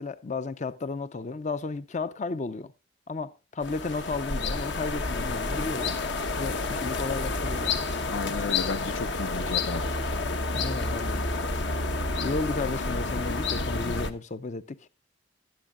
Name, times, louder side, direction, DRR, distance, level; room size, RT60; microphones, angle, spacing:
voice 1, 0.0-2.7 3.1-6.0 6.4-7.8 10.5-11.2 12.2-14.9, left 3 dB, 35° left, 0.5 m, -33 dB
sound 1, 3.6-14.1, left 3 dB, 65° left, 1.1 m, -29 dB
voice 2, 8.1-9.8, left 4 dB, 80° left, 0.8 m, -33 dB
21.5 x 8.5 x 2.4 m
head